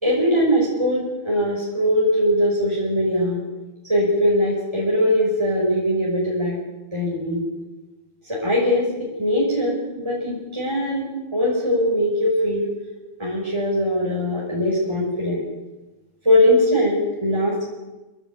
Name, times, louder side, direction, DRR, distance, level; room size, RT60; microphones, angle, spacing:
voice 1, 0.0-3.4 3.9-6.6 6.9-7.4 8.3-8.9 9.2-12.7 13.2-15.4 16.2-17.6, equal, 15° right, -6 dB, 6.1 m, -21 dB
29.5 x 10.0 x 9.7 m, 1.1 s
omnidirectional pair, 2.1 m